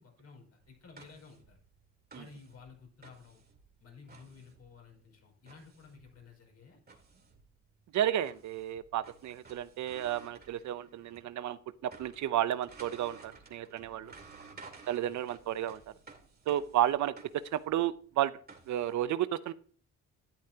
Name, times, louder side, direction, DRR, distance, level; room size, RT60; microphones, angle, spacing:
voice 1, 0.0-1.6 2.1-3.4 3.8-6.8 14.0-14.6 15.0-15.2, left 5 dB, 55° left, 2 dB, 5.0 m, -54 dB
sound 1, 0.6-11.3 11.6-19.0, right 4 dB, 30° right, 2.4 m, -56 dB
voice 2, 7.9-11.6 12.0-14.1 14.9-15.8 16.5-18.3 18.7-19.5, right 12 dB, 70° right, 15 dB, 0.7 m, -32 dB
12.0 x 9.6 x 2.8 m, 0.43 s
cardioid pair, 90°, 30 cm